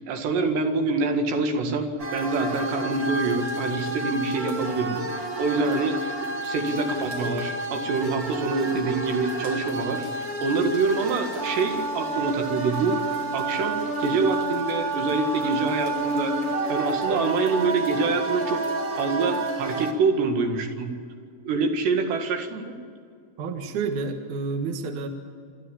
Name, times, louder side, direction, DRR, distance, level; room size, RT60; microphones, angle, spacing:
voice 1, 0.0-5.0 5.4-6.1 6.4-13.0 13.3-16.4 16.7-18.6 19.0-20.9 21.5-22.8, right 4 dB, 80° right, 4 dB, 4.1 m, -26 dB
sound 1, 2.0-19.9, right 2 dB, 40° right, 1.2 m, -30 dB
voice 2, 23.4-25.1, right 4 dB, 60° right, 5 dB, 2.6 m, -29 dB
27.5 x 13.0 x 8.7 m, 2.2 s
omnidirectional pair, 4.9 m